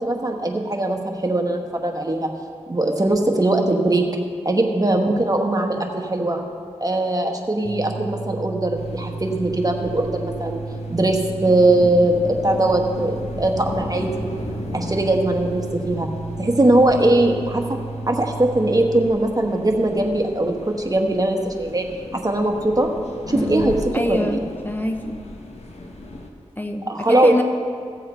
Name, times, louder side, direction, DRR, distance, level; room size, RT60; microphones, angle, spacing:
voice 1, 0.0-2.3 2.7-4.0 4.4-6.4 6.8-10.6 10.9-14.3 14.7-16.1 16.4-17.8 18.1-21.9 22.1-22.9 23.3-23.7 24.1-24.4 26.8-27.3, right 1 dB, 30° right, 2 dB, 1.3 m, -20 dB
sound 1, 7.6-19.1, right 3 dB, 65° right, 0.6 m, -33 dB
sound 2, 8.7-26.3, left 2 dB, 65° left, 1.2 m, -36 dB
voice 2, 23.3-25.2 26.6-27.4, left 1 dB, 15° left, 4 dB, 0.6 m, -26 dB
15.5 x 7.5 x 4.5 m, 2.2 s
wide cardioid pair, 65°, 12 cm